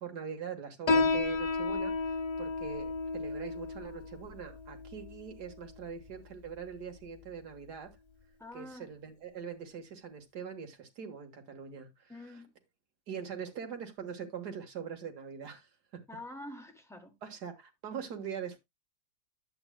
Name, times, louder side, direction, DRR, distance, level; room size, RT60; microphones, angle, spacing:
voice 1, 0.0-7.9 8.5-12.1 13.1-15.7 17.2-18.6, right 7 dB, 70° right, 2.1 m, -42 dB
Piano, 0.9-7.9, left 3 dB, 50° left, 0.3 m, -34 dB
voice 2, 8.4-8.9 12.1-12.5 16.1-17.1, left 1 dB, ahead, 1.3 m, -46 dB
11.0 x 8.3 x 2.2 m
omnidirectional pair, 1.8 m